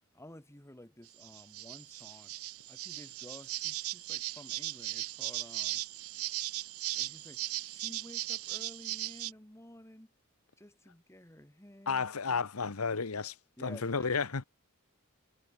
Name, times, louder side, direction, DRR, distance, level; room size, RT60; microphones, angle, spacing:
voice 1, 0.1-2.3 2.7-5.8 6.9-10.1 10.6-12.5 13.6-14.3, left 1 dB, 10° left, 2.5 m, -53 dB
sound 1, 1.1-9.3, right 16 dB, 70° right, 0.8 m, -38 dB
voice 2, 11.9-13.4 13.6-14.4, left 5 dB, 80° left, 1.1 m, -32 dB
head